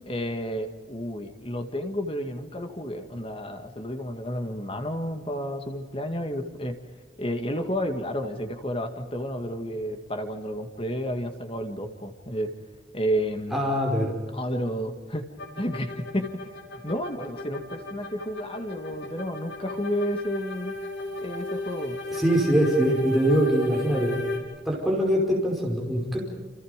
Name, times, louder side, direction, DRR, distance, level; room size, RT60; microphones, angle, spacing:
voice 1, 0.1-6.8 7.2-12.5 12.9-13.6 14.3-15.3 15.6-16.5 16.8-20.8 21.2-22.0, equal, 30° left, 6 dB, 2.1 m, -31 dB
voice 2, 13.5-14.1 22.1-24.2 24.7-26.2, right 1 dB, ahead, -3 dB, 5.3 m, -23 dB
sound 1, 15.4-24.4, left 2 dB, 80° left, 5.8 m, -34 dB
29.5 x 27.5 x 5.3 m, 1.4 s
head